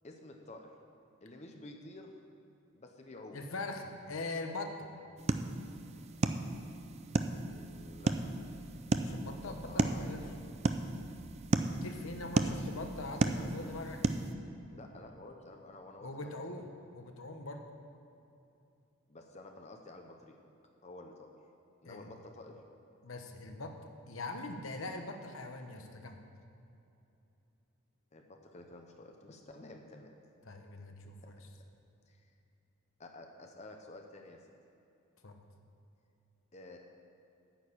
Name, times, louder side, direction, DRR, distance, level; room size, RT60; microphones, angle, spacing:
voice 1, 0.0-0.7 1.2-2.1 2.7-3.4 7.5-8.3 9.2-10.6 12.4-12.7 13.2-13.7 14.7-16.5 19.1-20.3 20.8-21.3 21.8-22.6 28.1-30.2 31.2-31.4 32.1-32.3 33.0-34.4 36.5-36.8, left 2 dB, 30° left, 3 dB, 0.7 m, -51 dB
voice 2, 3.3-4.8 9.0-10.2 11.6-14.0 16.0-17.6 21.8-22.1 23.0-23.8 24.1-26.2 30.4-31.4 35.2-35.4, left 2 dB, 70° left, 5 dB, 1.1 m, -42 dB
sound 1, 5.2-14.3, right 2 dB, 30° right, 0.4 m, -34 dB
9.2 x 6.6 x 8.6 m, 2.8 s
head